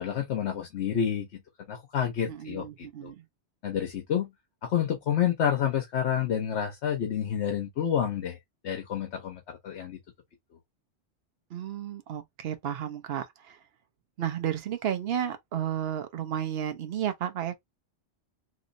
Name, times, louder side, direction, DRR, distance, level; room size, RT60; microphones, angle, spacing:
voice 1, 0.0-1.4 1.7-3.1 3.6-4.3 4.6-8.4 8.6-10.0, left 9 dB, 70° left, 1.0 m, -29 dB
voice 2, 2.3-3.2 11.5-13.6 14.2-17.6, right 10 dB, 60° right, 0.9 m, -32 dB
3.0 x 3.0 x 2.6 m
omnidirectional pair, 1.2 m